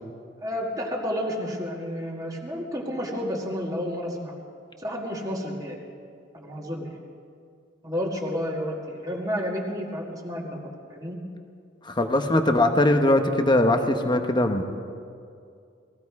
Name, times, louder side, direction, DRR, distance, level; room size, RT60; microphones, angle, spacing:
voice 1, 0.4-4.3 4.8-5.8 6.3-7.0 7.8-10.6 10.9-11.2, equal, 20° right, -1 dB, 2.0 m, -31 dB
voice 2, 11.8-14.6, left 1 dB, 25° left, 6 dB, 1.0 m, -21 dB
19.0 x 15.0 x 4.8 m, 2.3 s
head